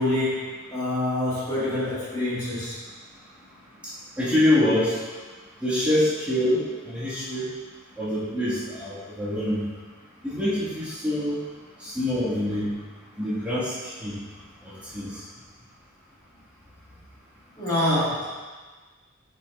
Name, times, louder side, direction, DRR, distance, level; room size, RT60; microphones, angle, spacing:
voice 1, 0.0-2.7 17.6-18.4, left 1 dB, 20° left, -10 dB, 1.7 m, -26 dB
voice 2, 4.2-5.0 5.6-7.5 8.0-9.6 10.2-11.4 11.8-12.7 13.2-14.1 14.9-15.1, left 1 dB, 5° right, -12 dB, 1.8 m, -25 dB
8.3 x 5.3 x 2.5 m, 1.4 s
head